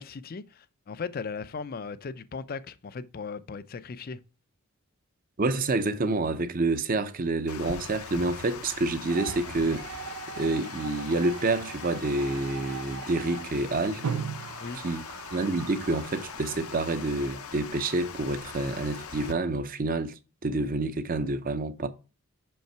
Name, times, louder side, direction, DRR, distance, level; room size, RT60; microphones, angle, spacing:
voice 1, 0.0-4.2 14.6-14.8, left 5 dB, 40° left, 0.4 m, -37 dB
voice 2, 5.4-14.1 14.8-15.0 15.3-20.1 20.4-21.9, right 2 dB, 40° right, 0.6 m, -28 dB
Water, 7.5-19.3, left 6 dB, 75° left, 0.7 m, -41 dB
sound 1, 9.1-17.5, right 6 dB, 85° right, 0.5 m, -40 dB
5.7 x 5.4 x 4.4 m
head